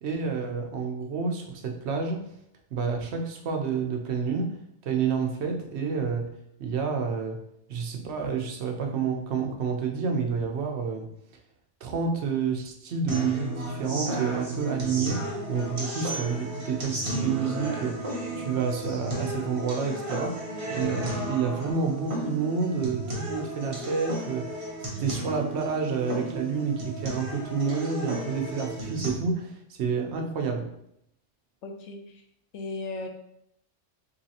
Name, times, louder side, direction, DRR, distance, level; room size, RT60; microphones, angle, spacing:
voice 1, 0.0-2.2 2.7-4.5 4.8-6.3 6.6-7.4 7.7-11.1 11.8-24.7 25.0-30.7, right 5 dB, 65° right, 3 dB, 0.9 m, -29 dB
sound 1, 13.1-29.1, right 1 dB, 30° right, 0.8 m, -34 dB
voice 2, 31.6-32.2 32.5-33.1, left 3 dB, 80° left, 4 dB, 0.9 m, -36 dB
3.9 x 3.1 x 2.8 m, 0.75 s
omnidirectional pair, 1.2 m